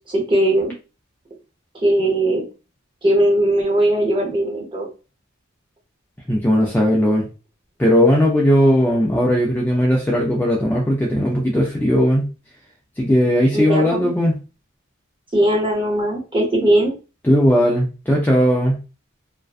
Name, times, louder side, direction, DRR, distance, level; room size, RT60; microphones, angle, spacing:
voice 1, 0.1-0.7 1.8-2.4 3.0-4.9 13.5-14.1 15.3-16.9, right 1 dB, 25° right, -2 dB, 0.7 m, -19 dB
voice 2, 6.3-7.2 7.8-12.3 13.0-14.3 17.2-18.8, equal, 10° left, -2 dB, 0.3 m, -17 dB
2.5 x 2.2 x 2.4 m, 0.32 s
head